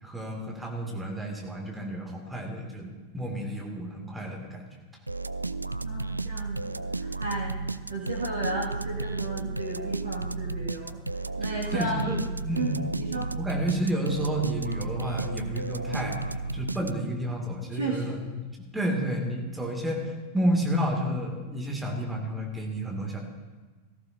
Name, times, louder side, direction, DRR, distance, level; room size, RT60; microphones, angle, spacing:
voice 1, 0.0-4.6 11.7-12.8 13.3-16.2 16.5-18.2 18.7-23.2, equal, 10° right, 0 dB, 2.3 m, -30 dB
sound 1, 5.1-17.3, right 3 dB, 85° right, 0.3 m, -33 dB
voice 2, 5.8-7.6 7.9-11.0 11.4-12.2 12.5-13.3 17.7-18.2, right 2 dB, 70° right, -4 dB, 1.9 m, -34 dB
17.5 x 14.0 x 2.7 m, 1.3 s
figure-of-eight pair, 90°, 0 cm